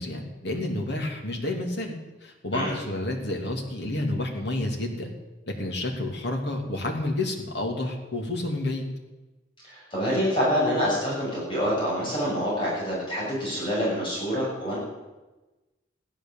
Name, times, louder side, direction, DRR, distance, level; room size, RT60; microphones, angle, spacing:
voice 1, 0.0-1.9 2.2-5.1 5.5-8.8, left 1 dB, 60° left, 1 dB, 2.9 m, -30 dB
voice 2, 9.6-14.8, equal, 25° left, -6 dB, 7.0 m, -26 dB
15.5 x 11.5 x 7.5 m, 1.1 s
head